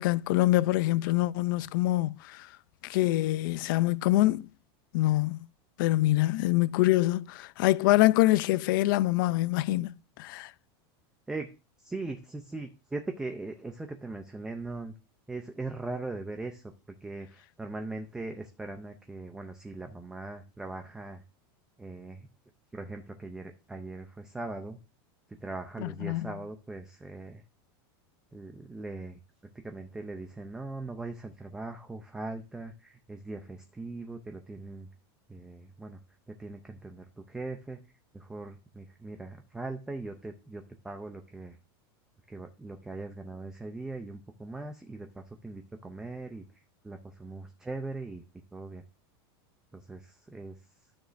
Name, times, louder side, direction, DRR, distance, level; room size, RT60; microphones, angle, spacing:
voice 1, 0.0-2.5 2.8-4.5 4.9-5.4 5.8-10.5 25.8-26.3, left 17 dB, 55° left, 0.4 m, -25 dB
voice 2, 11.8-14.9 15.3-16.6 17.0-21.2 21.8-22.3 22.7-24.8 25.4-27.4 28.3-29.2 29.5-34.9 35.3-36.0 36.3-37.8 38.1-41.6 42.3-48.2 48.5-48.8 49.7-50.6, right 2 dB, 5° right, 0.5 m, -40 dB
12.5 x 6.3 x 2.6 m
supercardioid pair, 170°, 13 cm